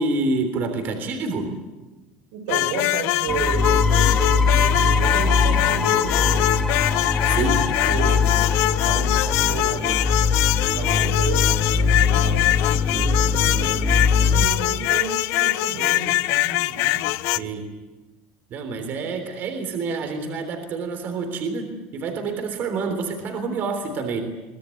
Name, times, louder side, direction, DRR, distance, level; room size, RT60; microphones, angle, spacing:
voice 1, 0.0-1.5 7.3-7.7 17.4-17.7 18.5-24.2, right 3 dB, 40° right, 6 dB, 3.5 m, -27 dB
voice 2, 2.3-6.6 7.3-10.0 10.7-17.0, right 5 dB, 90° right, 5 dB, 6.1 m, -33 dB
sound 1, 2.5-17.4, left 17 dB, 60° left, 0.8 m, -23 dB
sound 2, 3.3-14.5, left 5 dB, 10° left, 1.9 m, -21 dB
23.5 x 19.0 x 9.4 m, 1.1 s
cardioid pair, 160°, 5 cm